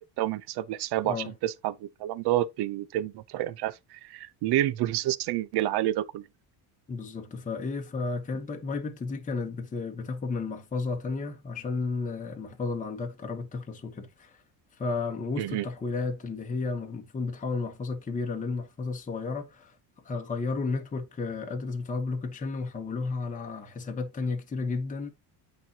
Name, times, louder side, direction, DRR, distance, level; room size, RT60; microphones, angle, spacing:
voice 1, 0.0-6.2 15.4-15.7, right 13 dB, 60° right, 0.8 m, -29 dB
voice 2, 6.9-14.4 14.7-19.7 20.0-25.1, left 4 dB, 15° left, 1.0 m, -33 dB
9.1 x 4.4 x 2.8 m
cardioid pair, 135°, 45 cm